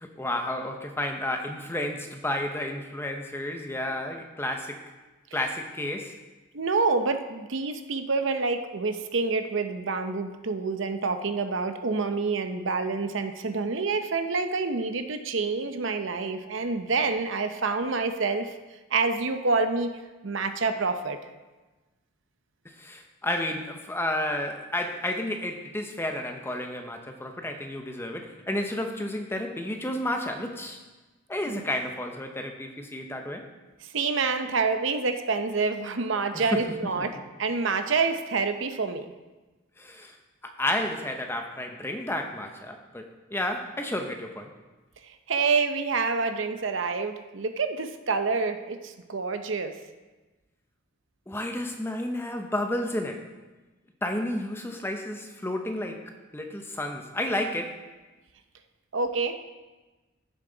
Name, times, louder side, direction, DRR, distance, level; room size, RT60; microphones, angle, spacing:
voice 1, 0.0-4.8 5.3-6.2 22.6-30.8 31.3-33.5 36.3-36.6 37.0-37.1 39.8-40.2 40.4-44.5 51.3-53.3 54.0-57.8, left 1 dB, 10° left, 4 dB, 0.7 m, -31 dB
voice 2, 6.5-18.5 18.9-19.9 20.2-21.2 31.5-31.6 33.8-39.1 45.0-49.8 58.9-59.3, right 4 dB, 65° right, 8 dB, 0.7 m, -27 dB
15.0 x 7.3 x 3.9 m, 1.2 s
head